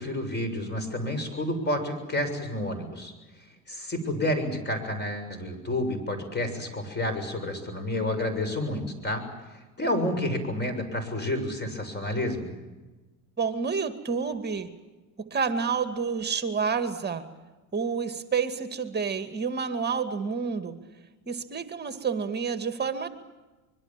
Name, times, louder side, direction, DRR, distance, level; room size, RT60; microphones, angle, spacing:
voice 1, 0.0-3.1 3.7-9.2 9.8-12.5, left 1 dB, 25° left, 8 dB, 6.8 m, -30 dB
voice 2, 13.4-14.7 15.3-17.3 17.7-20.8 21.3-23.1, right 5 dB, 20° right, 9 dB, 2.2 m, -29 dB
25.5 x 23.0 x 7.5 m, 1.2 s
hypercardioid pair, 85°, 44 cm